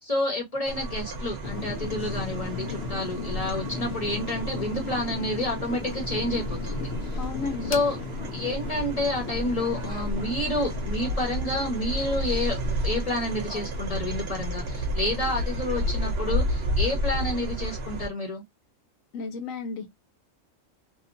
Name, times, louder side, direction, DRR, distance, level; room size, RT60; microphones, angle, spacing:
voice 1, 0.0-6.9 7.6-8.0 8.3-18.4, left 1 dB, 30° left, 1.1 m, -29 dB
sound 1, 0.6-18.1, equal, 55° right, 0.9 m, -32 dB
sound 2, 1.4-17.7, left 5 dB, 60° left, 0.8 m, -38 dB
voice 2, 7.2-7.7 19.1-19.9, left 4 dB, 85° left, 1.1 m, -33 dB
2.8 x 2.4 x 2.4 m
omnidirectional pair, 1.4 m